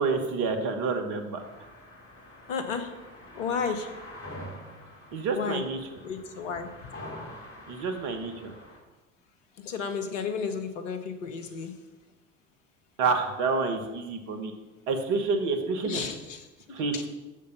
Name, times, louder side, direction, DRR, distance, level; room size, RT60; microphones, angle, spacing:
voice 1, 0.0-1.4 5.1-5.8 7.7-8.5 13.0-14.5 14.9-16.1 16.7-17.1, right 4 dB, 50° right, 6 dB, 1.3 m, -28 dB
sound 1, 1.4-8.8, left 1 dB, 35° left, 2.5 m, -46 dB
voice 2, 2.5-2.9 3.3-3.9 5.3-5.6 6.0-6.7 9.6-11.7 15.8-17.1, left 6 dB, 75° left, 7 dB, 1.1 m, -33 dB
6.6 x 5.2 x 6.8 m, 1.1 s
figure-of-eight pair, 65°, 38 cm